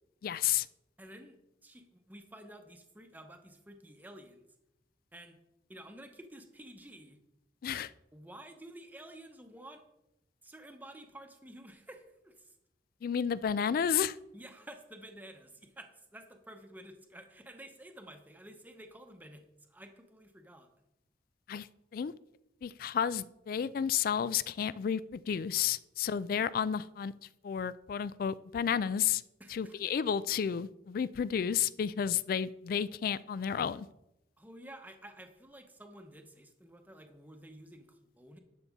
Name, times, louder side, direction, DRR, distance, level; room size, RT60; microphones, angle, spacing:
voice 1, 0.2-0.7 7.6-7.9 13.0-14.2 21.5-21.7 21.9-22.1 22.6-27.1 27.4-29.2 29.5-33.9, left 8 dB, 55° left, 18 dB, 0.3 m, -31 dB
voice 2, 1.0-1.4 1.6-4.5 5.1-5.4 5.7-7.2 8.1-9.8 10.4-12.5 14.3-20.7 29.4-29.8 34.4-38.4, right 1 dB, 10° right, 5 dB, 0.9 m, -51 dB
11.0 x 6.8 x 3.6 m, 0.88 s
head